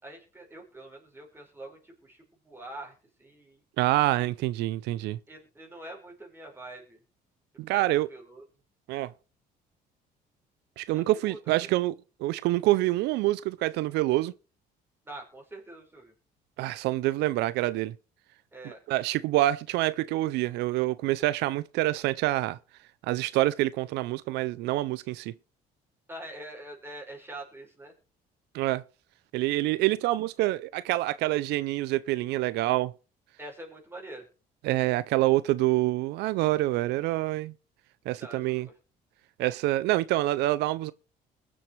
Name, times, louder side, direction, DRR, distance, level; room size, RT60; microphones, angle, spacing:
voice 1, 0.0-3.6 5.3-7.0 7.7-8.4 10.9-11.7 15.1-16.1 18.5-18.8 26.1-27.9 33.4-34.3 38.2-38.7, right 1 dB, 15° right, 5.3 m, -45 dB
voice 2, 3.8-5.2 7.6-8.1 8.9-9.1 10.8-11.9 12.2-14.3 16.6-17.9 18.9-22.6 23.0-25.3 28.5-28.8 29.3-32.9 34.6-37.5 38.1-38.7 39.4-40.9, right 17 dB, 85° right, 0.5 m, -26 dB
21.5 x 7.5 x 3.3 m
cardioid pair, 110°, 17 cm